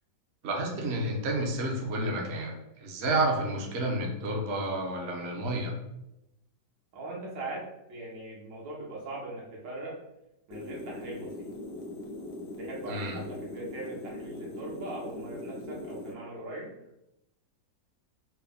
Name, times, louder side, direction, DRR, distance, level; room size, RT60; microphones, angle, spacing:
voice 1, 0.4-5.7 12.9-13.2, right 1 dB, 60° right, 0 dB, 0.7 m, -30 dB
voice 2, 6.9-7.6 7.9-10.0 10.5-11.5 12.6-16.7, right 2 dB, 80° right, -4 dB, 1.7 m, -40 dB
sound 1, 10.5-16.1, left 1 dB, 75° left, 1.2 m, -40 dB
4.4 x 2.0 x 3.4 m, 0.87 s
omnidirectional pair, 2.0 m